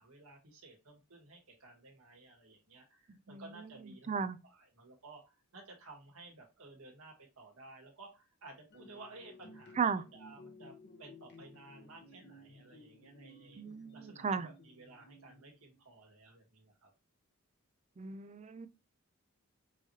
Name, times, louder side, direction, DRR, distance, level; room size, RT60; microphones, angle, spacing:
voice 1, 0.0-4.1 4.4-13.6 13.9-16.9, right 3 dB, 75° right, 1.6 m, -55 dB
voice 2, 4.1-4.4 9.8-10.0 13.6-14.5 18.0-18.7, right 6 dB, 30° right, 0.4 m, -35 dB
sound 1, 8.7-15.8, left 1 dB, 50° left, 0.9 m, -57 dB
5.4 x 3.2 x 2.7 m
head